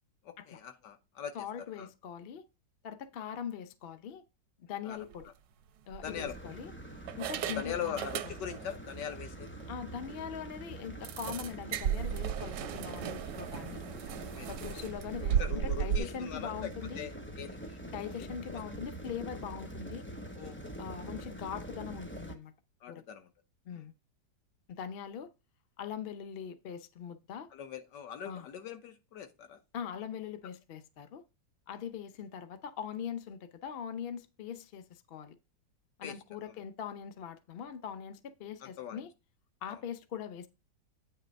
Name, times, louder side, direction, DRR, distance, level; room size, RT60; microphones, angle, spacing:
voice 1, 0.2-1.4 1.7-1.9 4.8-5.0 6.0-6.5 7.6-9.5 14.4-14.8 15.4-17.8 20.3-20.6 22.8-23.3 23.7-23.8 27.5-29.6 36.0-36.2 36.5-36.6 38.6-39.0 39.7-39.8, left 8 dB, 80° left, 1.6 m, -41 dB
voice 2, 1.3-2.4 2.8-4.2 4.6-5.3 5.9-6.7 7.2-8.3 9.7-13.8 14.5-17.1 17.9-20.1 20.8-22.5 22.9-23.0 23.7-23.9 24.7-25.3 25.8-27.5 28.2-28.5 29.7-31.2 31.7-35.4 36.0-39.1 39.6-40.5, left 8 dB, 55° left, 0.6 m, -41 dB
sound 1, 5.0-5.2 5.9-6.6 7.1-8.7 9.0-9.2 9.6-9.7 10.0-10.1 11.0-16.0, right 9 dB, 80° right, 1.3 m, -35 dB
sound 2, 6.0-22.4, right 1 dB, 15° left, 0.4 m, -45 dB
9.0 x 3.2 x 5.1 m
omnidirectional pair, 1.9 m